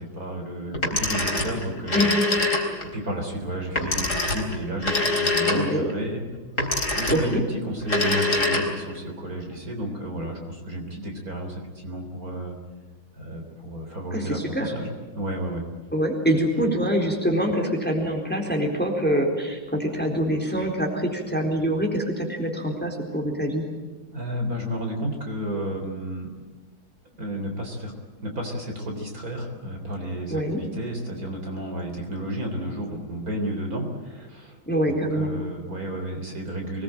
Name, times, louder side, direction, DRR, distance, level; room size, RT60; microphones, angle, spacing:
voice 1, 0.0-2.1 2.6-6.2 6.9-12.6 13.2-14.9 15.1-15.7 24.1-26.3 27.1-27.9 28.2-34.6 34.9-36.8, right 1 dB, 50° right, 3 dB, 4.2 m, -32 dB
Telephone, 0.7-2.9 3.8-5.9 6.6-7.4 7.8-9.0, left 2 dB, 40° left, 4.4 m, -24 dB
voice 2, 1.9-2.3 5.5-5.9 7.1-7.4 14.1-14.7 15.9-23.6 30.3-30.6 34.7-35.3, equal, 5° left, 2 dB, 3.9 m, -25 dB
25.0 x 20.5 x 8.9 m, 1.4 s
omnidirectional pair, 2.1 m